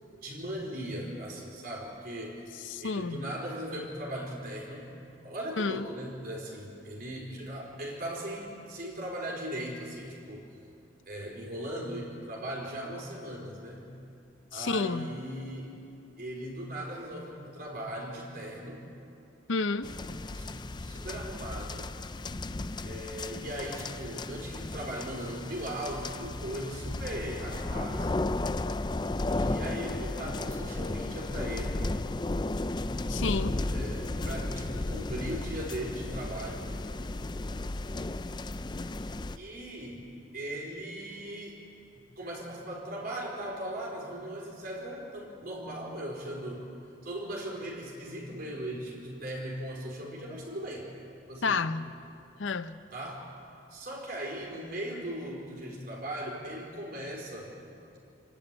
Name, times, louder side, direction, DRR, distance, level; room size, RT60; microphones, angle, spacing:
voice 1, 0.2-2.4 2.8-4.9 5.2-10.4 11.1-13.9 14.5-15.7 16.2-18.9 20.3-21.9 22.8-28.3 29.3-31.8 33.7-36.7 39.4-40.0 40.3-41.6 41.9-46.6 47.0-50.9 51.3-51.6 52.9-53.3 53.7-57.5, right 1 dB, 50° right, -2 dB, 4.2 m, -38 dB
voice 2, 2.6-3.3 5.6-5.9 14.5-15.2 19.5-19.9 33.1-33.6 51.4-51.9 52.4-52.8, left 4 dB, 80° left, 12 dB, 0.7 m, -30 dB
sound 1, 19.8-39.4, left 2 dB, 25° left, 0.4 m, -34 dB
27.5 x 11.5 x 9.0 m, 2.7 s
head